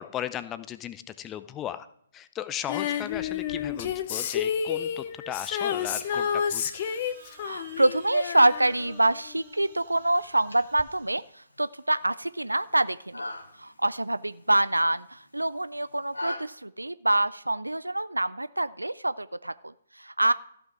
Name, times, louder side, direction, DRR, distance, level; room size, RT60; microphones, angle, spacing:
voice 1, 0.0-1.9 2.1-6.7, left 11 dB, 15° left, 13 dB, 0.6 m, -36 dB
Female singing, 2.7-9.6 10.8-10.9, left 8 dB, 35° left, 0.9 m, -30 dB
sound 1, 5.4-11.5, right 5 dB, 45° right, 2.9 m, -53 dB
voice 2, 7.4-13.2 13.6-20.3, right 1 dB, 85° right, 16 dB, 0.4 m, -26 dB
sound 2, 10.2-16.4, left 1 dB, 80° left, 2.1 m, -42 dB
14.5 x 6.2 x 6.1 m, 0.68 s
figure-of-eight pair, 130°, 0 cm